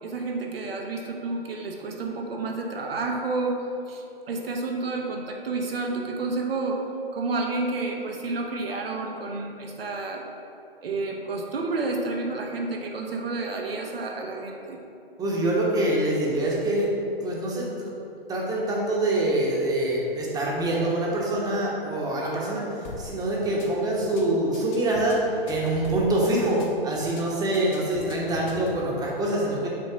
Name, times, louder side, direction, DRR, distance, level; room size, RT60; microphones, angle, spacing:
voice 1, 0.0-3.6 3.9-6.8 7.1-10.2 10.8-14.8, right 3 dB, 75° right, 1 dB, 1.1 m, -30 dB
voice 2, 15.2-16.9 17.2-17.9 18.3-25.2 25.5-29.7, right 1 dB, 10° right, -3 dB, 1.0 m, -25 dB
sound 1, 22.8-23.1 23.4-23.7 24.0-24.2 24.5-26.1 26.4-26.7 27.0-27.2 27.5-28.8, left 3 dB, 50° left, 1.2 m, -40 dB
7.3 x 3.0 x 5.0 m, 2.7 s
hypercardioid pair, 130°, 30 cm